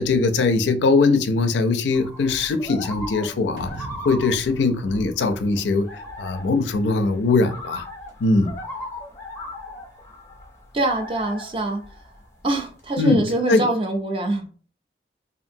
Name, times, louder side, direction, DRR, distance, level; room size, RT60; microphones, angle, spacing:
voice 1, 0.0-7.9 8.2-8.6 13.0-13.7, left 3 dB, 90° left, 0.4 m, -21 dB
sound 1, 1.9-12.8, left 1 dB, 15° left, 0.6 m, -38 dB
sound 2, 3.6-6.1, right 2 dB, 75° right, 0.7 m, -40 dB
voice 2, 10.7-11.8 12.4-14.4, right 2 dB, 30° right, 0.4 m, -24 dB
2.7 x 2.5 x 2.6 m
head